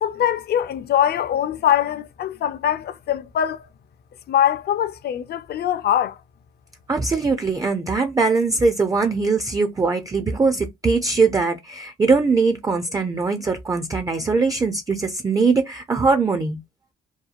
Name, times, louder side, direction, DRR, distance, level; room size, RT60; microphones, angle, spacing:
voice 1, 0.0-3.7 4.3-6.2, left 10 dB, 55° left, 0.4 m, -22 dB
voice 2, 6.9-16.6, right 4 dB, 20° right, 0.4 m, -21 dB
2.7 x 2.1 x 2.4 m
cardioid pair, 90°, 20 cm